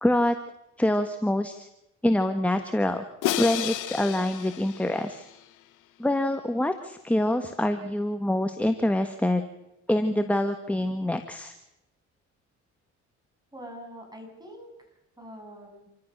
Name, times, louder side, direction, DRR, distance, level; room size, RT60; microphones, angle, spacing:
voice 1, 0.0-0.4 0.8-1.7 2.0-3.0 3.4-5.3 6.0-9.4 9.9-11.5, left 1 dB, 5° left, 7 dB, 1.5 m, -25 dB
Crash cymbal, 3.2-5.4, left 13 dB, 90° left, 1.5 m, -32 dB
voice 2, 13.5-14.7 15.2-15.9, equal, 15° right, 2 dB, 8.0 m, -44 dB
28.0 x 14.5 x 6.7 m, 0.89 s
cardioid pair, 90°, 30 cm